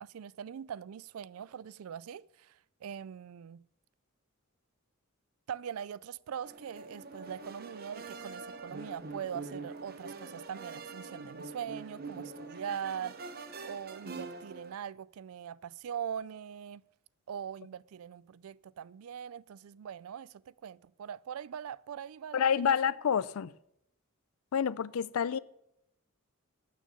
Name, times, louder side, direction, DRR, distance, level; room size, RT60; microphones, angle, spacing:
voice 1, 0.0-3.6 5.5-13.2 13.6-16.8 17.3-22.7, right 8 dB, 80° right, 0.4 m, -42 dB
sound 1, 6.4-14.7, right 3 dB, 45° right, 0.9 m, -44 dB
voice 2, 22.3-23.5 24.5-25.4, left 7 dB, 80° left, 0.4 m, -28 dB
13.0 x 6.4 x 6.9 m
head